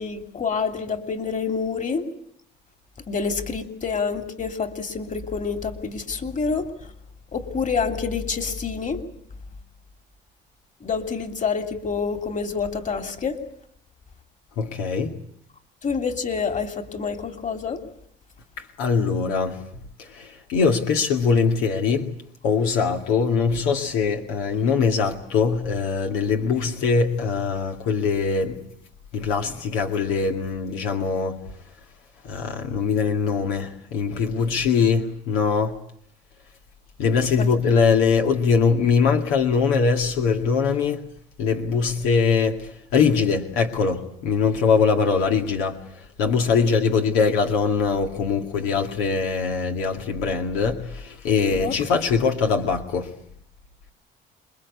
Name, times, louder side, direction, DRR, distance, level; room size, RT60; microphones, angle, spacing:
voice 1, 0.0-2.1 3.1-6.9 7.3-9.0 10.8-13.4 15.8-17.8 37.4-37.5 51.5-51.7, left 5 dB, 35° left, 3.0 m, -27 dB
voice 2, 14.6-15.1 18.6-19.6 20.0-22.1 22.4-28.6 29.1-31.4 32.2-35.8 37.0-41.0 41.4-53.1, left 5 dB, 90° left, 2.2 m, -22 dB
27.0 x 21.5 x 8.4 m
supercardioid pair, 85°, 21 cm